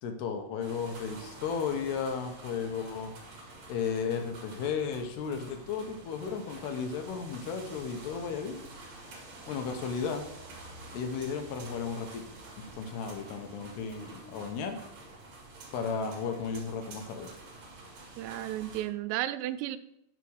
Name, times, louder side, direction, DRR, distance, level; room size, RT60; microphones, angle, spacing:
voice 1, 0.0-3.2 3.7-8.6 9.5-10.2 10.9-14.8 15.7-17.3, left 6 dB, 75° left, 5 dB, 2.6 m, -34 dB
sound 1, 0.6-18.8, right 2 dB, 45° right, 2.5 m, -48 dB
voice 2, 18.2-19.8, right 14 dB, 90° right, 12 dB, 3.2 m, -33 dB
10.5 x 4.2 x 6.4 m, 0.77 s
omnidirectional pair, 5.8 m